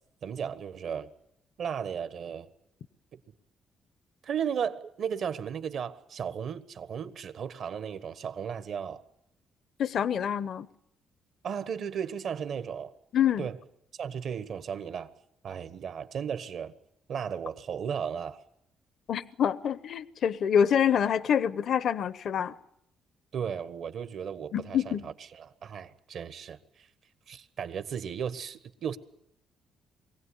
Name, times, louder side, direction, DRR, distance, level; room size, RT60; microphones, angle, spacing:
voice 1, 0.2-1.1 1.6-2.5 3.1-3.2 4.2-9.0 11.4-12.9 13.4-13.6 13.9-15.1 15.4-16.7 17.1-18.4 23.3-26.9 27.3-29.0, right 7 dB, 65° right, 1.4 m, -35 dB
voice 2, 9.8-10.7 13.1-13.5 19.1-22.5 24.5-25.0, left 8 dB, 65° left, 0.8 m, -26 dB
23.0 x 16.5 x 9.9 m
cardioid pair, 90°, 0 cm